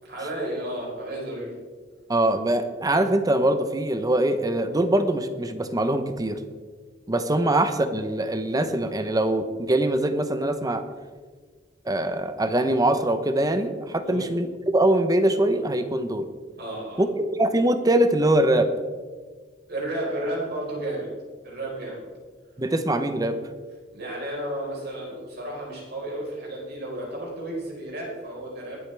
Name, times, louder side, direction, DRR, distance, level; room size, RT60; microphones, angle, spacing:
voice 1, 0.0-1.5 7.4-7.5 14.0-14.3 16.6-17.0 19.7-21.1 21.4-22.0 23.9-28.8, right 1 dB, 60° right, -3 dB, 4.3 m, -32 dB
voice 2, 2.1-6.4 7.1-10.8 11.9-16.3 17.0-17.1 17.3-18.7 22.6-23.4, right 1 dB, 20° right, 9 dB, 0.8 m, -23 dB
21.5 x 8.2 x 3.4 m, 1.5 s
head